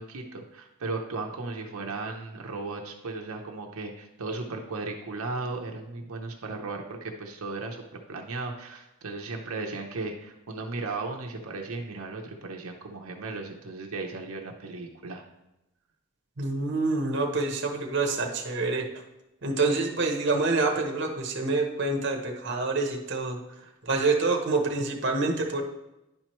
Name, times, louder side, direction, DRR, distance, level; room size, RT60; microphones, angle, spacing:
voice 1, 0.0-15.2, right 3 dB, 85° right, 1 dB, 0.7 m, -36 dB
voice 2, 16.4-18.9 19.4-23.4 23.8-25.6, right 3 dB, 50° right, 2 dB, 0.9 m, -27 dB
10.5 x 4.4 x 3.0 m, 0.94 s
head